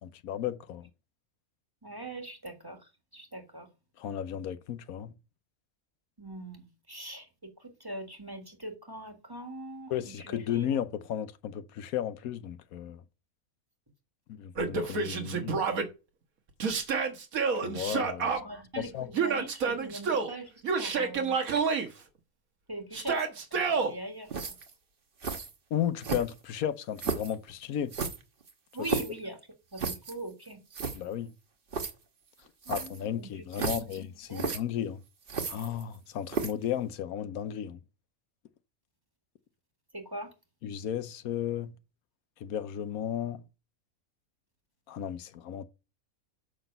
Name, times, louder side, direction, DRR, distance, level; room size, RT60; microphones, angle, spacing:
voice 1, 0.0-0.9 4.0-5.1 9.9-13.0 14.3-15.6 17.5-18.3 18.8-19.1 25.7-27.9 28.8-28.9 30.9-31.3 32.7-35.0 35.5-37.8 40.6-41.7 42.4-43.4 44.9-45.6, left 10 dB, 90° left, 1.2 m, -34 dB
voice 2, 1.8-2.8 3.1-3.7 6.2-10.6 18.3-20.5 20.8-21.4 22.7-24.5 28.7-29.4 29.7-30.6 32.6-33.8 34.3-34.5 39.9-40.3, right 1 dB, 15° right, 1.6 m, -42 dB
Yell, 14.6-15.8 16.6-18.4 19.1-20.3 20.6-21.9 22.9-23.9, right 5 dB, 75° right, 1.8 m, -29 dB
sound 1, 24.3-24.7 25.2-25.5 26.0-26.5 27.0-27.3 27.9-29.2 29.8-30.1 30.5-30.6 30.7-31.0 31.7-31.9 32.6-33.0 33.5-34.0 34.3-34.6 35.3-36.0 36.3-36.6, right 4 dB, 40° right, 1.2 m, -33 dB
7.7 x 6.0 x 5.3 m
omnidirectional pair, 1.5 m